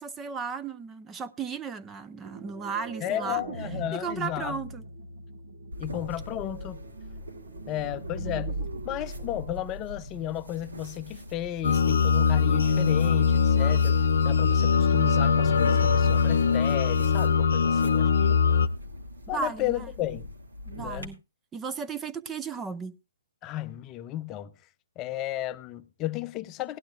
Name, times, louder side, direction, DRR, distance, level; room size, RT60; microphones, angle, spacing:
voice 1, 0.0-3.4 3.9-4.8 19.3-19.9 20.7-21.2 21.5-22.9, right 5 dB, 15° right, 0.7 m, -35 dB
sound 1, 2.2-11.0, right 2 dB, 55° right, 1.5 m, -40 dB
voice 2, 3.0-4.6 5.8-6.8 7.7-8.6 8.8-18.4 19.3-20.3 20.8-21.2 23.4-24.5 25.0-26.8, left 14 dB, 25° left, 0.7 m, -33 dB
sound 2, 5.7-21.0, left 1 dB, 80° right, 2.4 m, -43 dB
sound 3, 11.6-18.7, left 6 dB, 65° left, 0.8 m, -22 dB
18.0 x 11.5 x 2.4 m
figure-of-eight pair, 135°, 0 cm